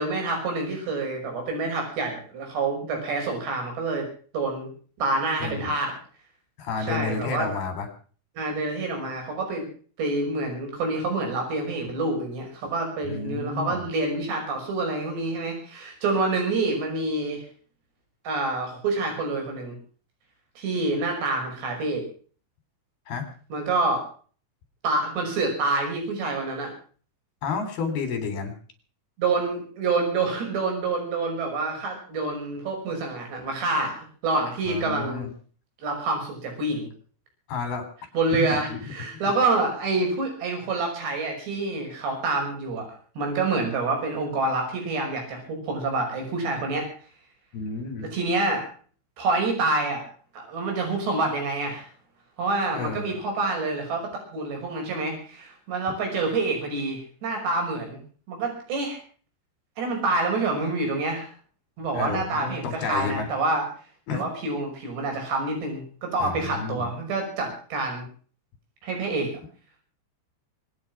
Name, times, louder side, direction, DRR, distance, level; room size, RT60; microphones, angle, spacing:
voice 1, 0.0-4.1 4.3-4.7 5.0-6.0 6.9-7.5 8.4-9.7 10.0-17.4 18.2-19.7 20.6-22.0 23.5-24.1 24.8-26.7 29.2-34.0 34.2-35.3 35.8-36.9 38.1-42.9 43.2-46.9 48.0-48.7 49.2-50.0 50.3-51.9 52.4-58.0 58.3-59.0 59.8-61.3 61.8-63.6 64.1-68.1 68.8-69.3, right 3 dB, 70° right, 2 dB, 7.9 m, -27 dB
voice 2, 5.4-5.7 6.6-7.9 13.0-13.8 23.1-23.3 27.4-28.5 34.7-35.3 37.5-37.9 38.3-38.8 39.1-39.2 47.5-48.1 52.7-53.1 61.9-63.3 64.1-64.3 66.2-66.9, left 5 dB, 60° left, 7 dB, 5.5 m, -31 dB
24.5 x 9.7 x 6.1 m, 0.43 s
omnidirectional pair, 5.1 m